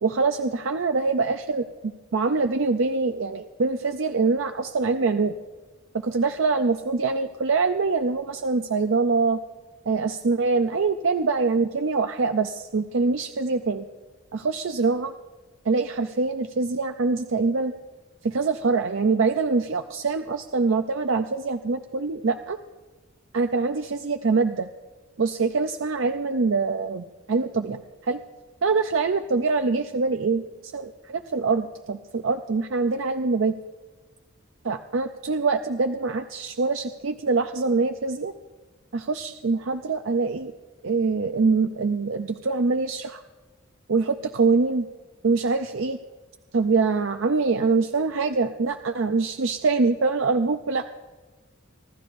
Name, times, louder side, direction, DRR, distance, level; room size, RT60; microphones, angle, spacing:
voice 1, 0.0-5.3 6.0-9.4 9.9-13.8 14.3-15.1 15.7-17.7 18.2-22.6 23.3-24.7 25.2-28.2 28.6-30.4 30.7-33.5 34.6-38.3 38.9-40.5 40.8-43.2 43.9-44.9 45.2-46.0 46.5-50.9, right 4 dB, 80° right, 7 dB, 0.6 m, -24 dB
26.0 x 12.5 x 2.6 m, 1.3 s
head